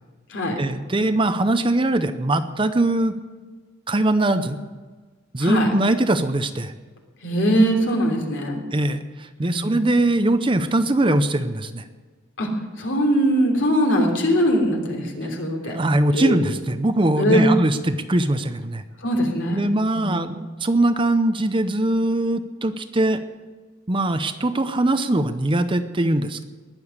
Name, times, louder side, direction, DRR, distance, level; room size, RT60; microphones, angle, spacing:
voice 1, 0.6-3.2 3.9-4.6 5.3-6.7 8.7-11.8 15.6-18.8 19.5-23.2 23.9-26.4, right 1 dB, 25° right, 9 dB, 0.7 m, -21 dB
voice 2, 5.4-5.7 7.2-8.6 9.4-9.8 12.4-12.5 12.8-15.8 16.1-16.4 17.2-17.6 19.0-19.6 19.9-20.2, equal, 65° left, 1 dB, 3.2 m, -21 dB
19.5 x 7.1 x 9.7 m, 1.3 s
head